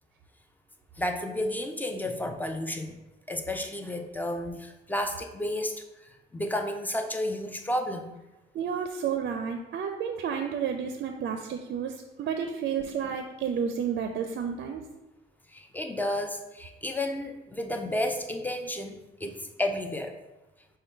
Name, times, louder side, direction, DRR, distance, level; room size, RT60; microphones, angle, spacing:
voice 1, 1.0-3.0 3.3-5.8 6.3-8.1 15.5-20.1, left 1 dB, 10° left, 5 dB, 0.5 m, -32 dB
voice 2, 8.5-14.8, right 7 dB, 55° right, 5 dB, 0.4 m, -31 dB
5.1 x 2.2 x 4.4 m, 1.0 s
cardioid pair, 90°, 20 cm